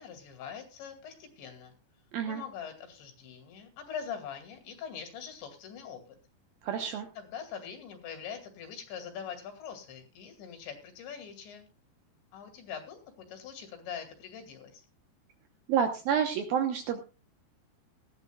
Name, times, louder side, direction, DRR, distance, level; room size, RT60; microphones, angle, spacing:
voice 1, 0.0-1.7 2.3-6.0 7.2-11.7 12.3-14.9, left 7 dB, 75° left, 6 dB, 4.7 m, -43 dB
voice 2, 6.6-7.1 15.7-17.0, right 8 dB, 70° right, 6 dB, 2.3 m, -29 dB
18.0 x 13.0 x 2.3 m, 0.32 s
omnidirectional pair, 5.3 m